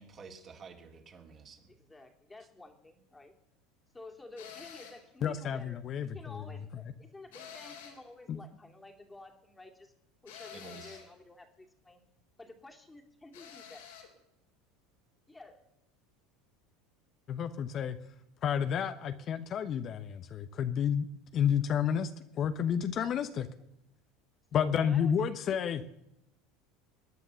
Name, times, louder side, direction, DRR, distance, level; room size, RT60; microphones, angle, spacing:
voice 1, 0.0-1.6 10.5-11.0, right 5 dB, 35° right, 2 dB, 3.2 m, -50 dB
voice 2, 1.7-3.3 3.9-9.9 10.2-12.0 12.4-13.9 15.3-15.7 24.5-25.9, left 2 dB, 15° left, 4 dB, 2.5 m, -51 dB
sound 1, 4.4-5.1 7.3-8.1 10.3-11.1 13.3-14.1, left 8 dB, 80° left, 3.7 m, -49 dB
voice 3, 5.2-6.4 8.3-8.4 17.3-18.0 18.4-21.1 21.3-22.1 22.3-23.5 24.5-25.8, left 8 dB, 45° left, 10 dB, 0.9 m, -30 dB
21.0 x 9.7 x 6.9 m, 0.85 s
hypercardioid pair, 80°, 0 cm